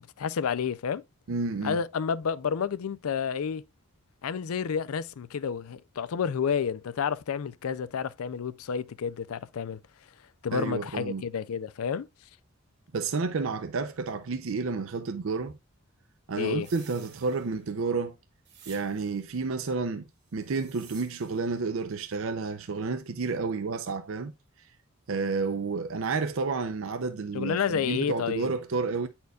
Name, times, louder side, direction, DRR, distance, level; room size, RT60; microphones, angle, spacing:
voice 1, 0.2-1.0 1.6-3.6 4.2-9.8 10.4-12.1 16.4-16.7 27.3-28.5, left 7 dB, 80° left, 0.4 m, -30 dB
voice 2, 1.3-1.8 10.5-11.2 12.9-15.6 16.3-18.2 18.7-24.3 25.1-29.1, right 4 dB, 65° right, 0.5 m, -30 dB
sound 1, 16.6-17.8 18.5-19.3 20.3-21.6, right 7 dB, 50° right, 1.4 m, -53 dB
9.4 x 4.4 x 2.3 m
head